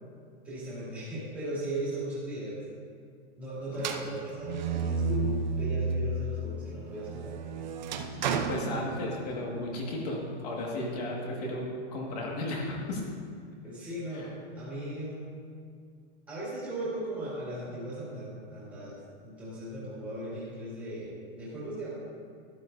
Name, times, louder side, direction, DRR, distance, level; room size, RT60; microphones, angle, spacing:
voice 1, 0.4-2.6 3.4-7.4 8.0-8.2 13.6-14.3 14.5-15.3 16.3-21.9, right 1 dB, 5° right, -9 dB, 2.4 m, -37 dB
voice 2, 3.7-4.2 8.5-13.0 14.1-14.3, left 1 dB, 35° left, -1 dB, 1.8 m, -34 dB
sound 1, 3.8-6.2 6.6-9.5, right 4 dB, 45° right, 0.7 m, -32 dB
12.0 x 12.0 x 2.6 m, 2.2 s
hypercardioid pair, 175°, 33 cm